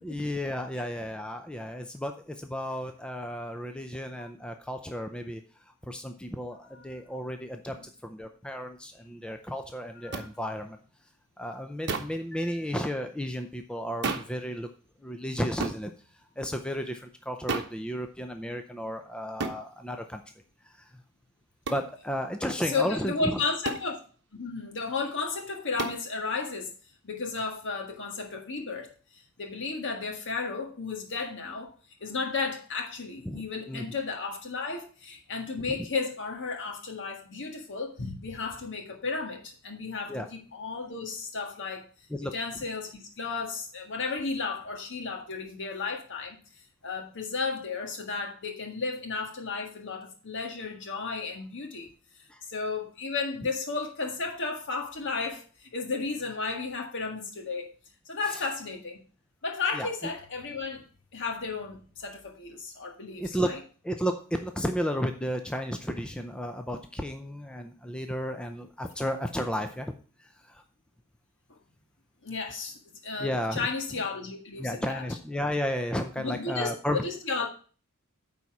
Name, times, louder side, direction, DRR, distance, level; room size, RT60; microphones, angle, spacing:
voice 1, 0.0-7.8 8.0-10.8 11.4-14.7 15.0-15.9 16.4-20.2 20.6-20.9 21.7-23.4 33.2-33.9 35.6-35.9 40.1-40.3 42.1-42.3 52.3-52.4 58.2-58.5 59.7-59.9 63.2-63.5 63.8-69.9 70.2-70.6 73.2-73.7 74.6-77.0, equal, 5° left, 0.5 m, -33 dB
sound 1, 10.1-10.3 11.9-12.2 14.0-14.4 15.6-15.8 17.5-17.8 19.4-19.6 21.7-21.9 23.6-23.9 25.8-26.0, right 4 dB, 50° right, 1.0 m, -32 dB
voice 2, 22.6-24.0 24.3-26.7 27.0-31.7 32.0-41.8 42.3-46.4 46.8-51.9 52.5-57.7 58.1-59.0 59.4-60.8 61.1-63.6 71.5-71.6 72.2-75.0 76.2-77.5, left 4 dB, 55° left, 1.7 m, -33 dB
9.1 x 4.2 x 6.0 m
head